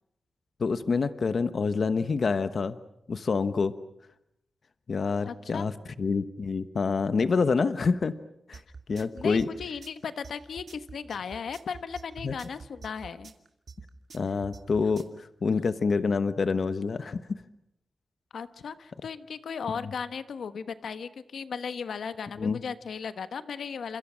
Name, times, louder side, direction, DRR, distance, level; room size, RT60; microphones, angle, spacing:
voice 1, 0.6-2.8 3.1-3.8 4.9-8.2 8.5-8.6 8.9-9.5 12.2-12.3 14.1-17.4 22.4-22.6, left 4 dB, 50° left, 12 dB, 1.1 m, -27 dB
voice 2, 5.2-5.7 9.1-13.3 15.5-15.7 18.3-24.0, left 6 dB, 80° left, 12 dB, 1.2 m, -36 dB
sound 1, 8.5-15.2, right 4 dB, 50° right, 2.6 m, -46 dB
29.0 x 27.5 x 6.3 m, 0.79 s
wide cardioid pair, 145°, 0 cm